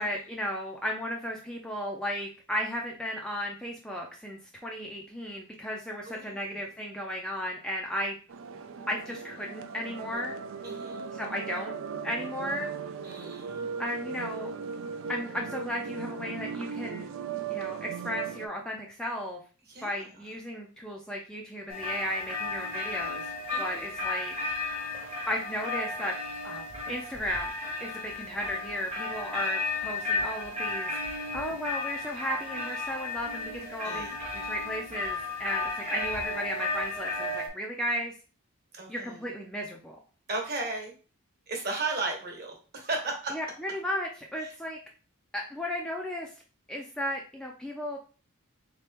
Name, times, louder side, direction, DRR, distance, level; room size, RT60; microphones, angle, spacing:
voice 1, 0.0-8.2 8.9-10.4 11.1-11.7 12.0-12.7 13.8-14.5 15.1-17.1 17.5-19.4 19.8-23.2 23.6-24.4 24.8-24.9 25.3-26.1 26.4-27.5 27.8-38.1 38.9-40.0 43.3-44.8 45.3-46.3 46.7-48.0, equal, 5° left, -1 dB, 0.4 m, -35 dB
voice 2, 6.1-6.4 10.6-11.1 13.0-13.6 19.7-20.1 23.5-23.9 33.8-34.2 38.7-39.2 40.3-40.9 41.5-43.3 44.4-44.5, right 3 dB, 45° right, 2 dB, 1.2 m, -35 dB
sound 1, 8.3-18.5, right 6 dB, 65° right, 0.4 m, -37 dB
sound 2, 21.7-37.5, left 3 dB, 30° right, 0.9 m, -34 dB
3.9 x 2.9 x 3.4 m, 0.37 s
head